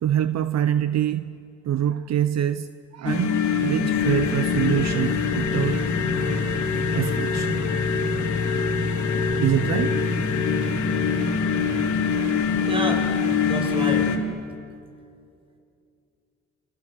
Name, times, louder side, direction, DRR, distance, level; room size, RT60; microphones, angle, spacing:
voice 1, 0.0-5.9 6.9-7.6 9.4-10.0, right 10 dB, 60° right, 12 dB, 0.8 m, -25 dB
sound 1, 3.1-14.2, left 5 dB, 75° left, 3.3 m, -24 dB
voice 2, 12.7-13.1 13.4-14.1, right 1 dB, 20° right, 4 dB, 5.7 m, -28 dB
29.5 x 26.5 x 7.6 m, 2.5 s
cardioid pair, 90°, 30 cm